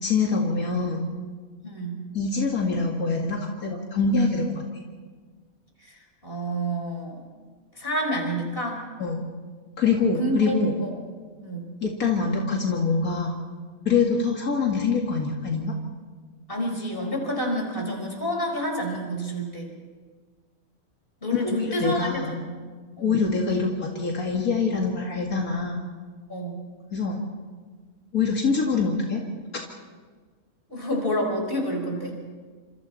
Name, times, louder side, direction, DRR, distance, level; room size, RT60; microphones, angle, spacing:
voice 1, 0.0-1.1 2.1-4.6 9.0-9.2 9.8-10.8 11.8-13.3 13.9-15.8 21.4-22.4 23.0-25.8 26.9-27.2 28.1-29.2, left 4 dB, 80° left, -1 dB, 2.6 m, -24 dB
voice 2, 1.6-2.0 5.9-6.0 6.2-7.2 7.8-8.8 10.2-10.5 10.8-10.9 11.4-11.6 16.5-19.7 21.2-22.4 22.9-23.2 26.3-26.6 30.7-32.2, equal, 40° left, 1 dB, 5.1 m, -28 dB
30.0 x 27.0 x 4.2 m, 1.5 s
omnidirectional pair, 1.5 m